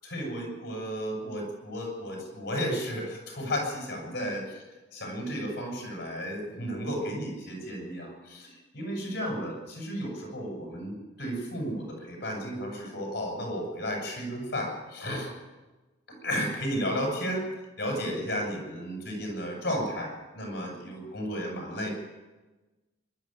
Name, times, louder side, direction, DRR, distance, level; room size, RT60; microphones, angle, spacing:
voice 1, 0.0-4.4 4.9-8.5 8.7-15.3 16.1-17.5 17.8-21.9, equal, 50° left, 0 dB, 7.9 m, -33 dB
23.5 x 12.0 x 9.3 m, 1.2 s
head